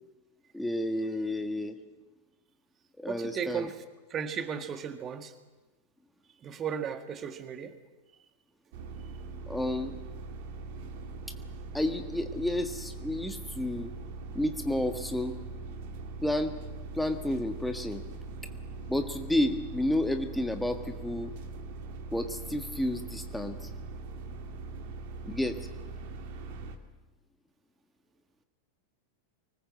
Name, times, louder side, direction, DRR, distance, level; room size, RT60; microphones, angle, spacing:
voice 1, 0.5-1.7 3.0-3.7 9.5-10.0 11.7-13.9 14.3-15.4 16.2-16.5 16.9-18.0 18.9-21.3 22.1-23.7 25.2-25.6, left 1 dB, 5° left, 6 dB, 1.6 m, -31 dB
voice 2, 3.1-3.8 4.1-5.3 6.4-7.8, right 7 dB, 25° right, 8 dB, 1.8 m, -35 dB
sound 1, 8.7-26.8, right 3 dB, 50° right, 2.5 m, -41 dB
25.0 x 20.0 x 7.8 m, 1.2 s
figure-of-eight pair, 90°, 0 cm